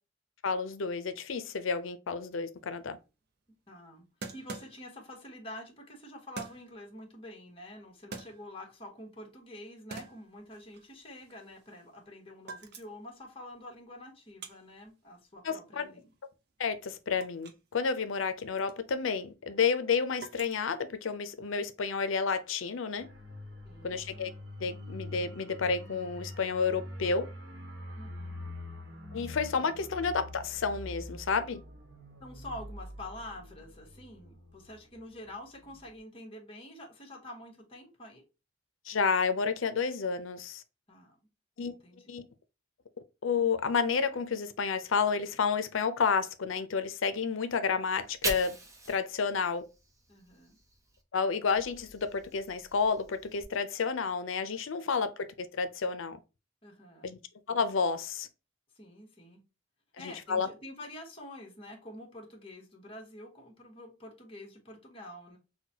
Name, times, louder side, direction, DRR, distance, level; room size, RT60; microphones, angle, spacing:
voice 1, 0.4-3.0 15.4-15.9 16.6-23.1 23.8-24.3 24.6-27.3 29.1-31.6 38.9-40.6 41.6-41.7 42.1-42.3 43.2-48.6 48.9-49.6 51.1-56.2 57.0-57.2 57.5-58.3 60.0-60.5, left 5 dB, 80° left, 0.6 m, -30 dB
sound 1, 2.6-2.7 2.9-3.0 4.2-5.2 6.4-6.9 7.8-8.8 9.2-9.6 9.9-12.1 12.4-13.1 13.5-17.7 18.0-21.2, right 3 dB, 55° right, 0.6 m, -47 dB
voice 2, 3.7-4.1 4.3-16.1 23.6-24.0 27.9-28.5 32.2-38.2 40.9-41.2 41.7-42.1 50.1-50.6 56.6-57.1 58.7-59.4 60.0-65.4, left 1 dB, 30° left, 1.3 m, -47 dB
sound 2, 23.0-35.3 35.6-35.8, left 1 dB, 75° right, 1.1 m, -45 dB
Fire, 47.9-51.0 51.4-53.4, right 2 dB, 15° right, 0.8 m, -42 dB
5.7 x 2.2 x 2.8 m
head